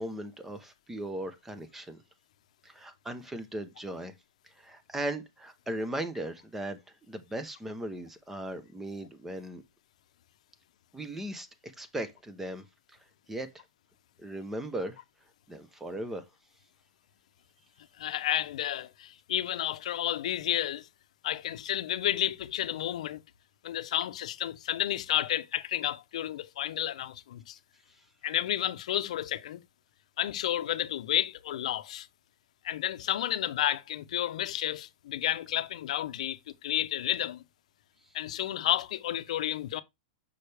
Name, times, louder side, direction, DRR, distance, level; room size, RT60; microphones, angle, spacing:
voice 1, 0.0-2.0 2.6-4.1 4.6-6.8 7.1-9.6 10.9-12.6 13.3-13.6 14.2-15.0 15.5-16.2, right 1 dB, 5° right, 0.8 m, -37 dB
voice 2, 18.0-20.9 21.2-23.2 23.6-27.6 28.2-29.6 30.2-32.1 32.6-37.4 38.1-39.8, left 12 dB, 70° left, 0.7 m, -31 dB
6.3 x 5.5 x 3.4 m
supercardioid pair, 155°, 4 cm